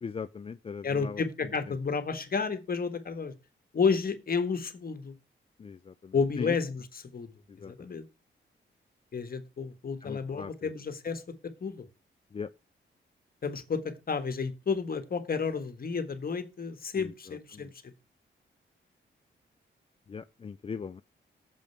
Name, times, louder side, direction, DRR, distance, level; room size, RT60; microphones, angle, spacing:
voice 1, 0.0-1.2 5.6-6.6 7.5-7.9 10.0-10.7 12.3-12.5 17.0-17.7 20.1-21.0, left 6 dB, 30° left, 0.4 m, -40 dB
voice 2, 0.8-3.3 3.7-5.1 6.1-7.3 7.7-8.0 9.1-11.2 11.6-11.9 13.4-17.9, left 5 dB, 50° left, 1.5 m, -31 dB
7.6 x 5.1 x 6.9 m
cardioid pair, 90°, 20 cm